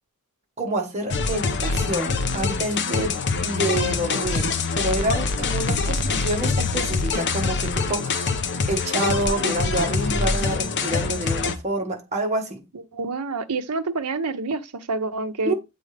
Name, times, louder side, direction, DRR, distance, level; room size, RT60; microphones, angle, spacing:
voice 1, 0.6-8.4 8.7-12.6 15.4-15.5, right 1 dB, 30° right, 1.5 m, -27 dB
sound 1, 1.1-11.6, left 4 dB, 50° left, 0.7 m, -24 dB
voice 2, 12.7-15.5, right 3 dB, 90° right, 0.7 m, -28 dB
7.7 x 3.9 x 3.3 m
head